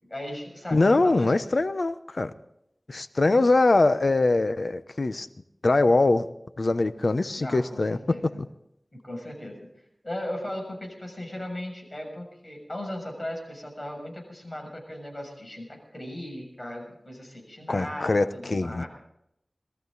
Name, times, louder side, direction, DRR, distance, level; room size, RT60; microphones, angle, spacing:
voice 1, 0.0-1.3 3.3-3.4 7.3-8.4 8.9-9.7 10.0-18.9, left 1 dB, 30° left, 0 dB, 6.8 m, -37 dB
voice 2, 0.7-2.3 2.9-5.3 5.6-6.3 6.6-8.0 17.7-18.8, left 2 dB, 65° left, 11 dB, 0.8 m, -22 dB
21.5 x 14.0 x 4.1 m, 0.78 s
wide cardioid pair, 60°, 0 cm